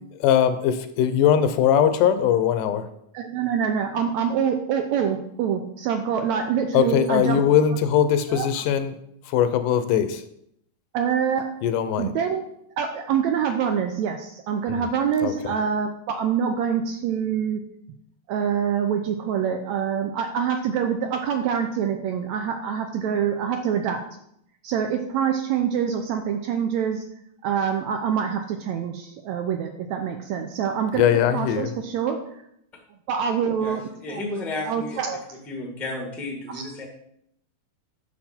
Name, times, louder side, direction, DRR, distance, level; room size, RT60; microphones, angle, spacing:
voice 1, 0.2-2.9 6.7-8.9 9.3-10.2 11.6-12.1 14.7-14.8 15.2-15.3 30.9-31.7, left 9 dB, 80° left, 11 dB, 2.1 m, -20 dB
voice 2, 3.1-7.4 8.3-8.5 10.9-11.5 12.0-12.4 12.8-17.6 18.3-24.0 24.6-27.1 27.4-32.2 33.1-33.8 34.1-34.2 34.7-35.2 36.5-36.6, right 7 dB, 80° right, 5 dB, 1.7 m, -25 dB
voice 3, 33.6-35.0 35.5-36.8, left 2 dB, ahead, 0 dB, 0.4 m, -32 dB
9.6 x 6.5 x 4.3 m, 0.74 s
omnidirectional pair, 3.8 m